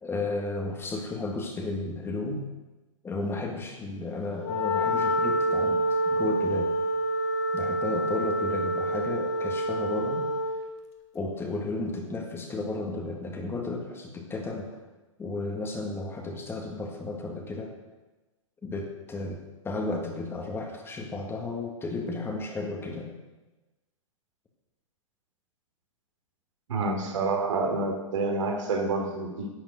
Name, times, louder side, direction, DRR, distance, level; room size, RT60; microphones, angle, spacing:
voice 1, 0.0-2.5 3.0-6.7 7.5-10.3 11.1-14.8 15.2-17.7 18.6-23.1, left 3 dB, 15° left, 2 dB, 1.8 m, -33 dB
Wind instrument woodwind instrument, 4.4-10.7, right 1 dB, 50° left, 2.0 m, -27 dB
voice 2, 26.7-29.5, right 3 dB, 65° right, 3 dB, 3.0 m, -28 dB
11.0 x 7.3 x 8.1 m, 1.1 s
hypercardioid pair, 115°, 17 cm